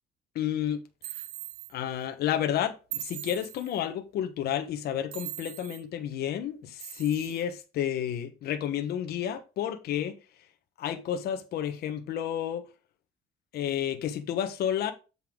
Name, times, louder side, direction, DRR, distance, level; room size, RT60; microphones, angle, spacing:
voice 1, 0.3-1.2 1.7-10.2 10.8-12.7 13.5-14.9, left 10 dB, 70° left, 1.2 m, -31 dB
sound 1, 1.0-1.7 2.9-3.8 5.1-5.8 6.8-7.4, right 13 dB, 80° right, 1.0 m, -40 dB
7.8 x 5.6 x 3.8 m
cardioid pair, 110°, 17 cm